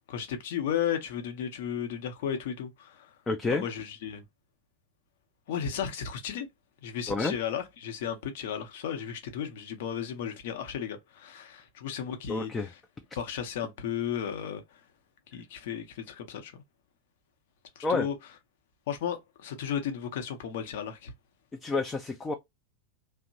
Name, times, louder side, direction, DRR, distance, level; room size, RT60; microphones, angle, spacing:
voice 1, 0.1-3.1 3.5-4.2 5.5-6.5 6.8-12.5 13.2-14.6 15.3-16.5 17.8-18.2 18.9-21.1, left 8 dB, 55° left, 0.7 m, -34 dB
voice 2, 3.3-3.6 7.1-7.3 12.3-12.7 17.8-18.1 21.6-22.3, left 3 dB, 15° left, 0.4 m, -29 dB
2.8 x 2.0 x 2.6 m
figure-of-eight pair, 90°, 0 cm